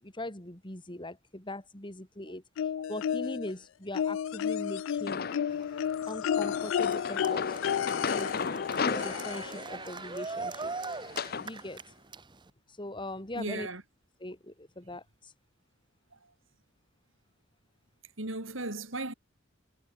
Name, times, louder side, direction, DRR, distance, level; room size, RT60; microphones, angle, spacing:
voice 1, 0.0-5.2 6.1-7.5 8.0-8.3 8.7-10.7 11.4-11.8 12.7-13.7 14.2-15.3, left 1 dB, 25° left, 3.6 m, -41 dB
sound 1, 2.6-3.5 3.9-9.6 10.8-10.9 11.3-11.4, left 8 dB, 75° left, 0.3 m, -32 dB
sound 2, 5.1-5.7 6.4-11.5, left 5 dB, 50° left, 0.8 m, -35 dB
Cheering, 5.5-12.5, right 3 dB, 25° right, 1.0 m, -41 dB
voice 2, 13.3-13.8 16.1-16.3 18.2-19.1, right 2 dB, 75° right, 5.3 m, -36 dB
head